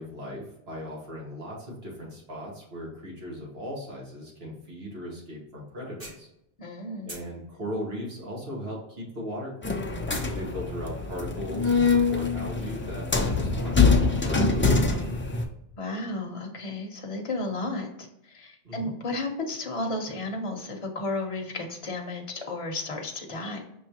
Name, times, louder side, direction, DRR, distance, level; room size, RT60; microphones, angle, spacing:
voice 1, 0.0-6.3 7.0-9.8 10.3-15.1 18.6-18.9, equal, 75° right, -4 dB, 1.9 m, -38 dB
sound 1, 5.7-6.7 7.0-8.9 9.2-10.4, right 1 dB, 60° right, 2.0 m, -43 dB
voice 2, 6.6-7.1 15.8-23.6, left 2 dB, 35° left, 2 dB, 0.8 m, -33 dB
sound 2, 9.6-15.4, left 4 dB, 20° left, 0.4 m, -24 dB
5.7 x 3.3 x 2.8 m, 0.82 s
omnidirectional pair, 1.0 m